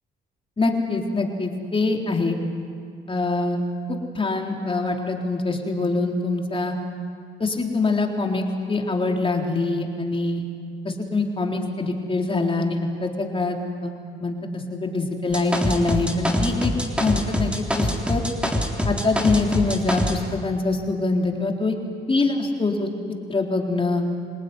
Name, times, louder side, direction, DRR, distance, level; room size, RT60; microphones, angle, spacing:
voice 1, 0.6-2.4 3.1-3.6 3.9-6.8 7.4-10.4 10.8-13.9 14.2-16.7 17.0-18.2 18.9-21.7 22.1-22.9 23.3-24.0, left 3 dB, 25° left, 1 dB, 3.9 m, -24 dB
sound 1, 15.3-20.2, equal, 5° right, 3.7 m, -24 dB
27.0 x 19.0 x 9.8 m, 2.3 s
cardioid pair, 90°, 20 cm